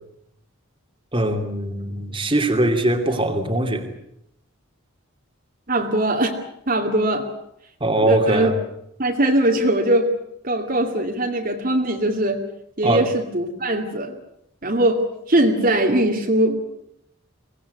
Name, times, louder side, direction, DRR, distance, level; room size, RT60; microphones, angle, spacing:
voice 1, 1.1-3.9 7.8-8.5 12.8-13.0, right 1 dB, 25° right, 4 dB, 2.7 m, -21 dB
voice 2, 5.7-6.4 6.7-7.3 8.0-8.5 9.0-10.1 10.4-12.4 12.8-14.1 14.6-15.0 15.3-16.6, right 1 dB, 40° right, 2 dB, 2.5 m, -20 dB
24.5 x 18.0 x 9.6 m, 0.78 s
head